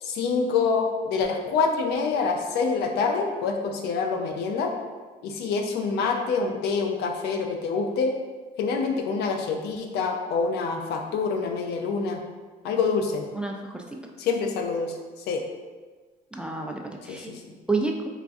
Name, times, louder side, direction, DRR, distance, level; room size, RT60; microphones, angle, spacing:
voice 1, 0.0-4.7 5.2-8.1 8.6-12.2 12.6-13.2 14.2-15.0 15.3-15.4 17.1-17.5, left 4 dB, 75° left, 3 dB, 0.5 m, -26 dB
voice 2, 13.4-13.8 16.3-17.3 17.7-18.1, right 3 dB, 5° right, 1 dB, 0.3 m, -29 dB
4.3 x 2.4 x 2.5 m, 1.4 s
cardioid pair, 110°, 17 cm